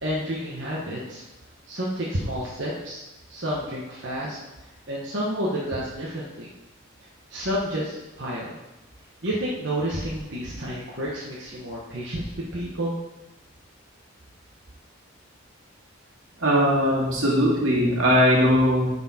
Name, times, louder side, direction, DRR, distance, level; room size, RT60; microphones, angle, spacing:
voice 1, 0.0-1.2 1.7-3.0 3.3-4.4 4.9-6.5 7.3-8.5 9.2-12.9, equal, 60° right, -6 dB, 1.3 m, -30 dB
voice 2, 16.4-18.9, equal, 80° right, -4 dB, 2.3 m, -20 dB
9.9 x 4.6 x 4.3 m, 1.0 s
head